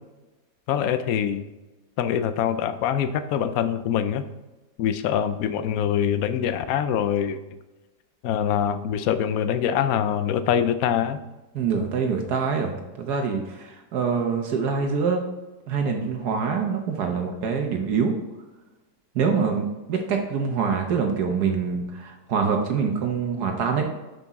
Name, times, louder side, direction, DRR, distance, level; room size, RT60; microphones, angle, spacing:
voice 1, 0.7-1.4 2.0-4.2 4.8-7.4 8.2-11.2, left 9 dB, 70° left, 11 dB, 1.0 m, -24 dB
voice 2, 11.5-15.2 15.7-18.1 19.1-23.9, right 5 dB, 75° right, 3 dB, 1.4 m, -25 dB
7.0 x 6.0 x 4.0 m, 1.1 s
omnidirectional pair, 1.8 m